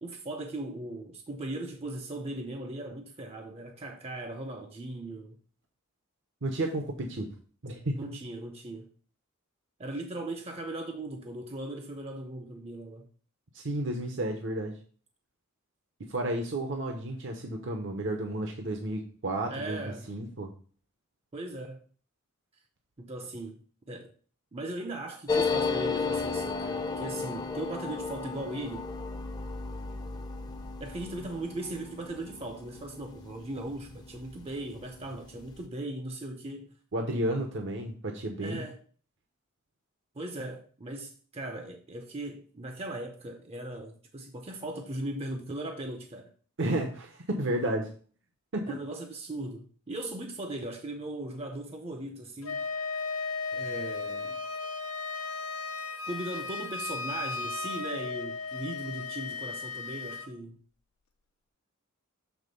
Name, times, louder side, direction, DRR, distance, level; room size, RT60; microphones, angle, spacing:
voice 1, 0.0-5.4 8.0-8.9 9.8-13.1 19.5-20.1 21.3-21.8 23.0-23.6 23.9-24.1 24.5-28.9 30.8-36.7 38.4-38.8 40.2-46.3 48.7-52.6 53.5-54.5 56.1-60.6, right 1 dB, 30° right, 0.6 m, -38 dB
voice 2, 6.4-7.3 7.6-8.0 13.5-14.8 16.1-19.8 20.1-20.5 36.9-38.6 46.6-47.9 48.5-48.8, right 1 dB, 60° right, 0.9 m, -32 dB
sound 1, 25.3-34.4 34.7-34.8 35.0-35.6, left 4 dB, 20° left, 0.7 m, -34 dB
Wind instrument woodwind instrument, 52.4-60.3, left 4 dB, 85° left, 0.9 m, -35 dB
7.3 x 3.6 x 5.2 m
head